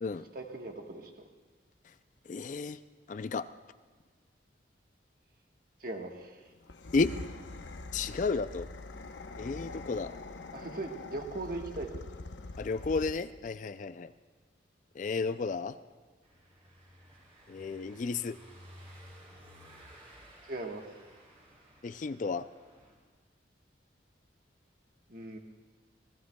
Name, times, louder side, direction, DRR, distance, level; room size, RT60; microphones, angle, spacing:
voice 1, 0.3-1.2 5.8-6.4 10.5-12.1 20.5-20.8 25.1-25.4, right 2 dB, 50° right, 3 dB, 1.3 m, -39 dB
voice 2, 2.3-2.8 3.1-3.5 6.9-7.1 7.9-8.7 9.4-10.1 12.6-14.1 15.0-15.7 17.5-18.4 21.8-22.4, left 4 dB, 40° left, 12 dB, 0.3 m, -32 dB
sound 1, 6.6-13.4, left 2 dB, 75° left, 0.8 m, -44 dB
Car passing by / Engine, 16.2-22.9, equal, 35° right, 4.1 m, -55 dB
27.5 x 19.0 x 2.3 m, 1.4 s
head